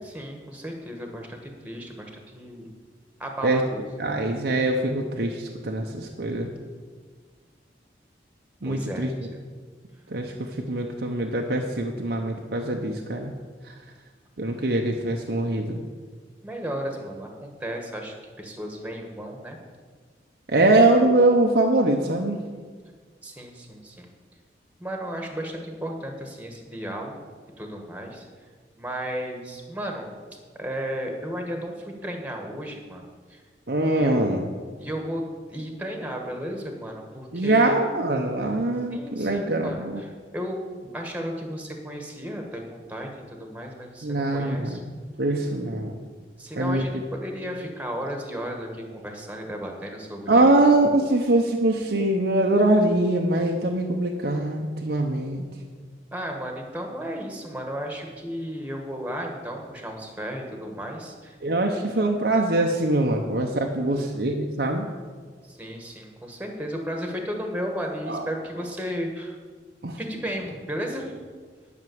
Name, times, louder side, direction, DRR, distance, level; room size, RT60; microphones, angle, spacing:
voice 1, 0.0-2.7 3.2-3.8 8.6-9.4 16.4-19.6 23.2-24.1 24.8-27.3 27.6-28.3 28.8-30.1 30.6-33.0 33.3-33.4 33.9-34.4 34.8-35.2 35.5-37.8 38.9-44.8 46.4-50.6 56.1-61.3 65.4-69.4 70.0-71.1, equal, 10° right, 2 dB, 1.4 m, -34 dB
voice 2, 4.0-6.5 8.6-9.1 10.1-13.3 14.4-15.8 20.5-22.4 33.7-34.4 37.3-40.0 44.0-45.9 46.6-46.9 50.3-55.4 61.4-64.9 68.1-68.3 69.8-70.0, right 2 dB, 65° right, 1 dB, 0.9 m, -23 dB
11.0 x 6.1 x 7.8 m, 1.5 s
head